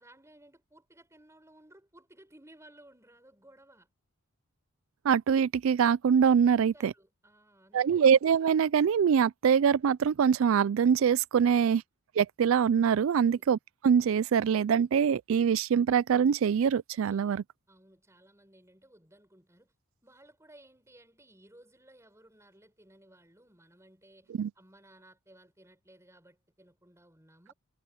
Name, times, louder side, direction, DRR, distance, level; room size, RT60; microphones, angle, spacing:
voice 1, 0.0-3.9 6.5-8.1 13.1-13.5 17.0-19.7 20.0-27.5, right 1 dB, 15° right, 6.3 m, -58 dB
voice 2, 5.0-6.9 7.7-11.8 12.2-13.6 13.8-17.4 24.4-24.5, right 7 dB, 65° right, 0.3 m, -24 dB
head